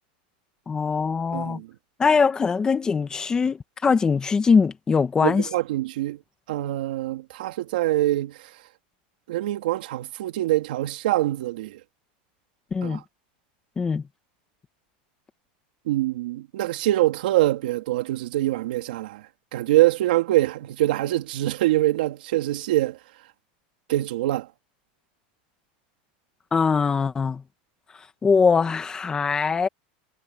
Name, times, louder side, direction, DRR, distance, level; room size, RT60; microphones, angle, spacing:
voice 1, 0.7-1.6 2.0-5.5 12.7-13.0 13.8-14.0 26.5-27.4 28.2-29.7, left 5 dB, 15° left, 1.8 m, -22 dB
voice 2, 1.3-1.7 5.2-6.2 6.5-8.4 9.3-11.8 12.8-13.0 15.9-19.2 19.5-23.0 23.9-24.5, right 15 dB, 80° right, 3.3 m, -24 dB
supercardioid pair, 150°, 5 cm